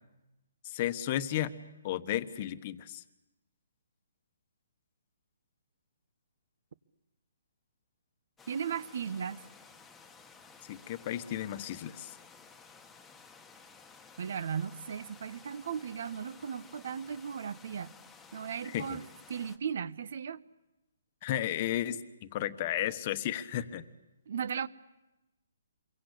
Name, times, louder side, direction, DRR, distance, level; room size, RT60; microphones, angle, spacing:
voice 1, 0.6-1.5 1.8-3.0 10.6-12.1 18.7-19.0 21.2-23.8, left 12 dB, 30° left, 11 dB, 1.2 m, -33 dB
sound 1, 8.4-19.6, left 5 dB, 5° left, 1.4 m, -55 dB
voice 2, 8.5-9.4 14.2-17.9 18.3-19.0 19.3-20.4 24.3-24.7, right 7 dB, 55° right, 17 dB, 1.0 m, -36 dB
28.5 x 23.5 x 8.4 m, 0.99 s
hypercardioid pair, 165°, 0 cm